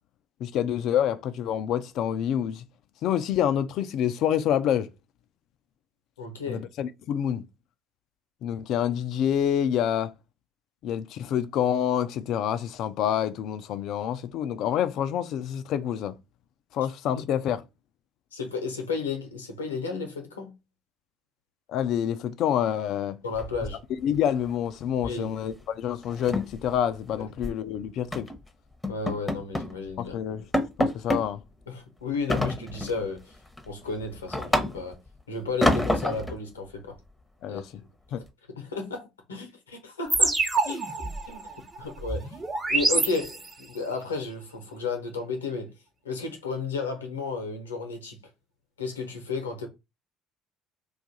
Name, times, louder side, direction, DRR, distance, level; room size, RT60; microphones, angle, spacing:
voice 1, 0.4-2.6 3.0-4.9 6.5-7.5 8.4-10.1 10.8-16.1 16.7-17.6 21.7-23.2 24.0-28.3 30.0-30.5 30.8-31.4 37.4-37.8 38.1-38.2, left 9 dB, 60° left, 0.3 m, -27 dB
voice 2, 6.2-6.6 17.1-17.2 18.3-20.5 23.2-23.8 25.0-25.3 27.2-27.3 28.9-30.2 31.7-33.3 33.7-35.0 35.3-37.0 37.5-37.6 38.5-40.4 40.6-41.4 41.8-42.3 42.7-45.7 46.0-48.2 48.8-49.7, left 4 dB, 85° left, 0.7 m, -33 dB
sound 1, 23.4-24.2 24.5-24.7 25.0-25.2 25.5-25.6 26.0-27.6 28.1-28.4 28.8-29.8 30.1-30.2 30.5-31.3 32.3-33.0 33.5-35.1 35.6-36.4, left 1 dB, 10° left, 0.8 m, -28 dB
sound 2, 40.1-43.8, right 3 dB, 25° right, 0.8 m, -27 dB
2.5 x 2.4 x 4.0 m
hypercardioid pair, 60°, 0 cm